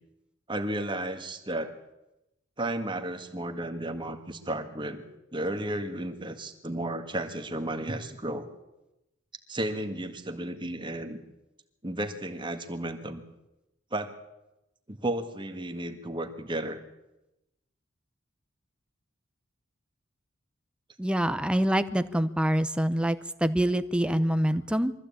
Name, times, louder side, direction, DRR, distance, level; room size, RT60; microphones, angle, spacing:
voice 1, 0.5-1.8 2.6-5.0 5.3-8.5 9.5-11.2 11.8-13.2 13.9-14.1 14.9-16.8, right 1 dB, 25° right, 7 dB, 1.8 m, -33 dB
voice 2, 21.0-24.9, right 1 dB, 5° right, 11 dB, 0.8 m, -25 dB
23.0 x 15.0 x 8.7 m, 0.94 s
head